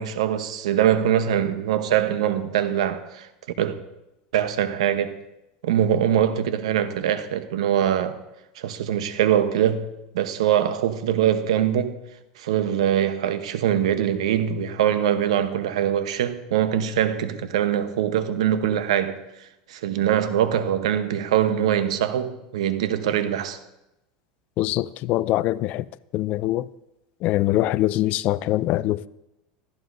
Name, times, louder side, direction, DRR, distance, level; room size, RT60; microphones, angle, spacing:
voice 1, 0.0-3.3 3.6-3.8 4.3-5.2 5.6-8.2 8.6-9.9 10.1-11.9 12.4-19.2 19.7-23.6, right 10 dB, 85° right, 0.9 m, -23 dB
voice 2, 24.6-25.9 26.1-26.7 27.2-29.1, left 15 dB, 50° left, 0.4 m, -23 dB
14.5 x 14.5 x 2.6 m
supercardioid pair, 120°, 3 cm